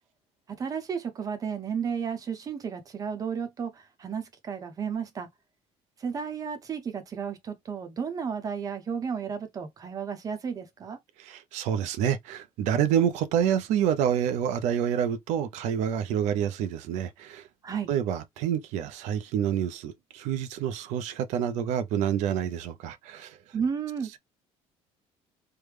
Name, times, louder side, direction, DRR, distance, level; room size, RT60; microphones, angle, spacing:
voice 1, 0.6-5.3 6.0-11.0 17.6-17.9 23.5-24.1, right 6 dB, 30° right, 0.8 m, -33 dB
voice 2, 11.2-17.5 17.9-23.4, right 9 dB, 75° right, 0.5 m, -28 dB
3.3 x 2.1 x 3.3 m
cardioid pair, 150°, 12 cm